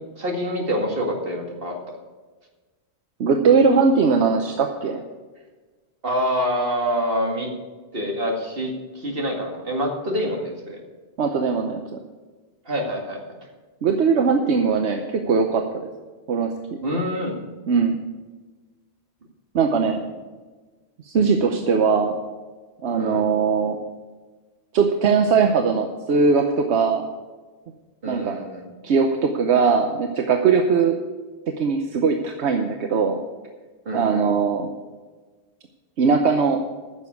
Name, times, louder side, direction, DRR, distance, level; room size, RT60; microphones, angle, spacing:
voice 1, 0.2-1.7 6.0-7.5 7.9-10.8 12.7-13.2 16.8-17.3 23.0-23.3 28.0-28.6 33.9-34.3, equal, 60° right, 1 dB, 2.2 m, -26 dB
voice 2, 3.2-5.0 11.2-11.8 13.8-15.6 16.3-16.5 17.7-18.0 19.5-20.0 21.0-22.2 22.8-23.8 24.7-27.1 28.1-28.4 28.8-31.0 31.6-33.2 33.9-34.7 36.0-36.6, right 5 dB, 85° right, 4 dB, 1.1 m, -20 dB
9.8 x 7.0 x 8.3 m, 1.3 s
omnidirectional pair, 1.1 m